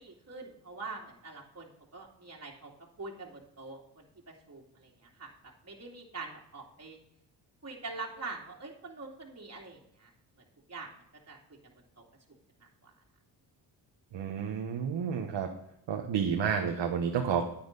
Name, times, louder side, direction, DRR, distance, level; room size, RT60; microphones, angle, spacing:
voice 1, 0.0-2.7 3.0-5.3 5.6-7.0 7.6-10.1 10.4-10.9 11.3-11.4 11.6-12.1 12.6-12.9, right 3 dB, 35° right, -2 dB, 2.7 m, -44 dB
voice 2, 14.1-15.5 15.9-17.4, right 7 dB, 70° right, 3 dB, 1.2 m, -30 dB
9.8 x 8.7 x 4.0 m, 0.77 s
supercardioid pair, 55°, 45 cm